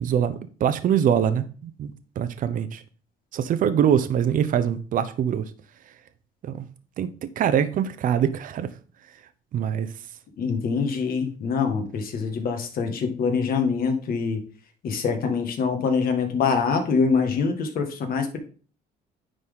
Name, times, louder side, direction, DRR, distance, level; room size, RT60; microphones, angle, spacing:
voice 1, 0.0-2.8 3.3-5.5 6.4-6.7 7.0-8.7 9.5-9.9, right 9 dB, 55° right, 0.7 m, -24 dB
voice 2, 10.4-14.4 14.8-18.4, left 5 dB, 60° left, 1.7 m, -24 dB
9.8 x 4.1 x 3.7 m
cardioid pair, 110°, 17 cm